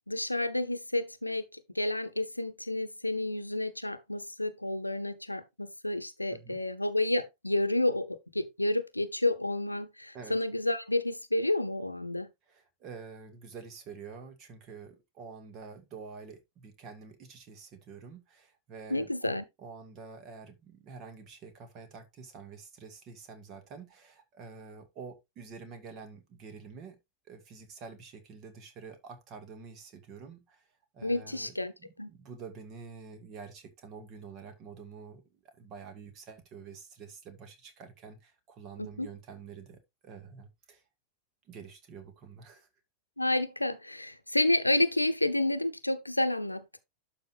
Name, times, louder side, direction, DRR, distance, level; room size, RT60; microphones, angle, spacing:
voice 1, 0.1-12.3 18.9-19.4 31.0-31.7 32.0-32.1 38.8-39.1 43.2-46.8, left 1 dB, 85° left, 0.8 m, -30 dB
voice 2, 6.3-6.6 10.1-10.4 12.5-27.0 27.3-30.7 30.9-31.5 31.8-40.8 41.5-42.7, right 5 dB, 35° right, 2.1 m, -48 dB
11.5 x 5.4 x 2.6 m
figure-of-eight pair, 90°, 0 cm